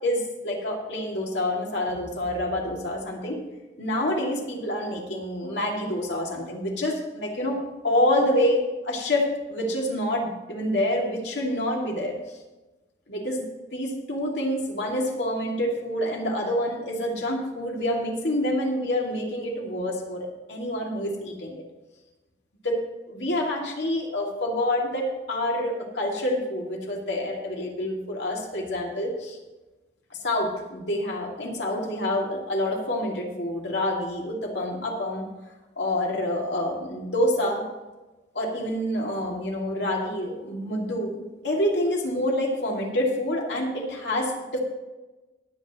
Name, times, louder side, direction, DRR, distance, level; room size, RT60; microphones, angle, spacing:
voice 1, 0.0-3.4 3.8-12.2 13.1-13.5 13.7-21.6 22.6-29.4 30.1-35.3 35.8-37.6 38.3-41.2 41.4-44.6, left 1 dB, 75° left, -1 dB, 2.4 m, -27 dB
21.0 x 8.2 x 3.0 m, 1.1 s
head